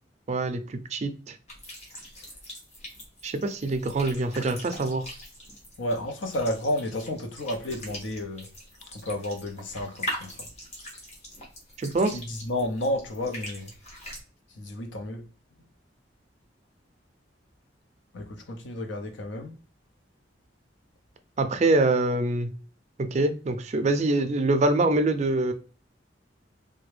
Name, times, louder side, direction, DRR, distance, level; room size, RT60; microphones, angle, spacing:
voice 1, 0.3-1.4 3.2-5.1 11.8-12.2 21.4-22.5 23.0-25.5, right 2 dB, 35° right, 0.4 m, -25 dB
sound 1, 1.5-14.2, equal, 35° left, 1.1 m, -42 dB
voice 2, 5.8-8.5 8.9-10.5 12.1-13.7 14.6-15.2 18.1-19.6, left 1 dB, 80° left, 0.7 m, -31 dB
3.4 x 2.2 x 3.2 m
head